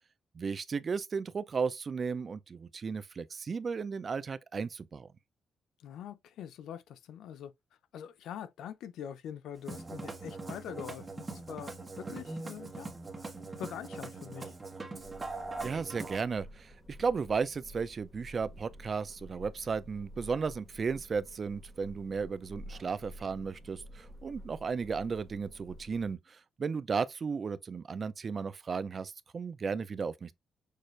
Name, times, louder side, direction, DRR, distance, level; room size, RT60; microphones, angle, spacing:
voice 1, 0.4-5.1 15.6-30.3, right 5 dB, 40° right, 0.4 m, -35 dB
voice 2, 5.8-7.5 7.9-12.9 13.2-14.5, left 9 dB, 85° left, 0.6 m, -44 dB
Musical instrument, 9.5-16.2, right 3 dB, 25° right, 1.2 m, -41 dB
sound 1, 15.0-26.1, equal, ahead, 0.8 m, -50 dB
6.5 x 2.5 x 3.1 m
cardioid pair, 115°, 0 cm